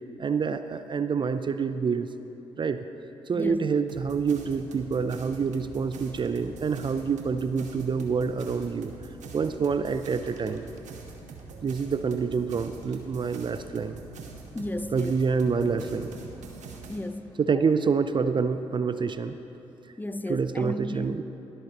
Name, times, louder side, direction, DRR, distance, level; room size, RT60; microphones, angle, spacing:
voice 1, 0.2-2.1 2.6-2.8 3.3-8.9 9.3-10.7 11.6-14.0 14.9-16.1 17.4-19.4 20.3-21.2, right 5 dB, 35° right, 0.4 m, -27 dB
voice 2, 3.3-3.7 14.5-15.1 16.7-17.3 20.0-21.2, left 1 dB, 15° left, 0.5 m, -33 dB
sound 1, 3.9-17.0, right 4 dB, 65° right, 1.3 m, -44 dB
21.5 x 8.0 x 2.9 m
hypercardioid pair, 45°, 13 cm